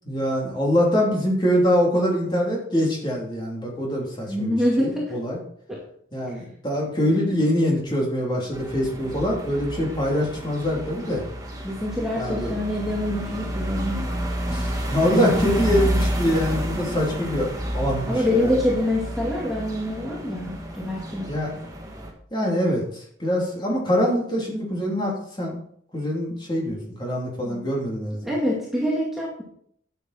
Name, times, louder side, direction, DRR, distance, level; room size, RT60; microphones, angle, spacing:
voice 1, 0.0-5.4 6.1-11.2 12.1-12.5 14.5-18.5 21.3-21.5 22.3-25.6 25.9-28.3, equal, 25° left, -2 dB, 3.2 m, -24 dB
voice 2, 4.3-5.2 5.7-5.8 11.6-14.1 18.1-21.3 27.4-27.7 28.2-29.4, left 1 dB, ahead, -5 dB, 2.1 m, -25 dB
sound 1, 8.5-22.1, equal, 20° right, 1.8 m, -30 dB
11.5 x 7.7 x 4.3 m, 0.63 s
head